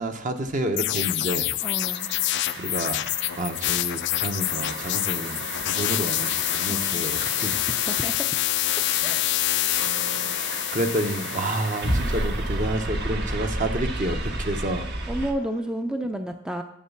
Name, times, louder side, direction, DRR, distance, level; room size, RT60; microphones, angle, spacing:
voice 1, 0.0-1.6 2.5-3.1 3.4-7.6 10.3-14.9, right 1 dB, 40° right, 6 dB, 1.0 m, -29 dB
sound 1, 0.8-12.2, left 15 dB, 65° left, 0.4 m, -27 dB
voice 2, 1.6-2.1 6.7-7.1 7.7-8.3 9.0-9.2 15.1-16.6, right 1 dB, 5° right, 5 dB, 0.5 m, -31 dB
sound 2, 1.6-15.3, right 1 dB, 60° right, 1.4 m, -33 dB
7.5 x 7.3 x 7.1 m, 0.79 s
head